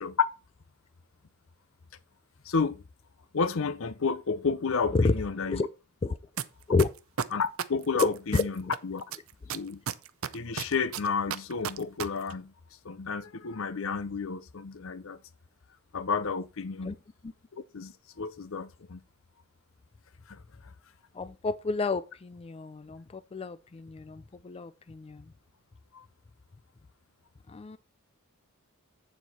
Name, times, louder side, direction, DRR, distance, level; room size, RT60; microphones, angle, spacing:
voice 1, 2.5-2.8 3.3-5.7 7.3-9.1 9.5-9.8 10.3-12.5 12.8-15.2 15.9-17.0 17.7-19.0 20.3-20.4 25.9-26.0, left 5 dB, 65° left, 0.7 m, -31 dB
sound 1, 6.4-6.5 6.8-8.8 9.1-12.0 12.3-12.4, right 8 dB, 70° right, 0.6 m, -32 dB
voice 2, 8.0-8.5 16.8-17.0 21.2-25.2 27.5-27.8, left 3 dB, 30° left, 0.4 m, -29 dB
8.1 x 7.2 x 4.2 m
head